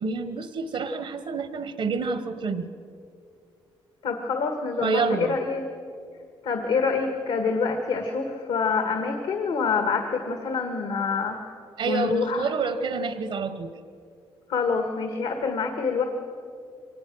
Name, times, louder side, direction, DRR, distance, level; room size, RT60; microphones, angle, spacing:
voice 1, 0.0-2.7 4.8-5.4 11.8-13.7, right 4 dB, 75° right, 10 dB, 1.2 m, -28 dB
voice 2, 4.0-5.6 6.4-11.4 11.9-12.5 14.5-16.0, left 5 dB, 85° left, 4 dB, 1.8 m, -26 dB
23.5 x 19.0 x 6.3 m, 2.4 s
cardioid pair, 75°, 10 cm